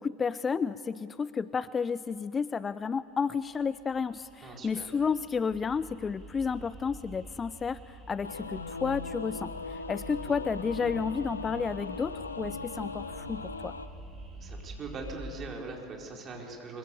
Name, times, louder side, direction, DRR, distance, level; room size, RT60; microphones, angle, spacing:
voice 1, 0.0-13.7, left 5 dB, 25° left, 17 dB, 0.5 m, -32 dB
sound 1, 3.3-15.3, right 2 dB, 20° right, 5.7 m, -47 dB
voice 2, 4.4-4.9 10.2-10.3 14.3-16.8, right 3 dB, 35° right, 0 dB, 4.9 m, -41 dB
Singing / Musical instrument, 8.2-13.9, left 4 dB, 85° left, 0.9 m, -39 dB
25.5 x 23.0 x 7.0 m, 2.5 s
figure-of-eight pair, 75°, 0 cm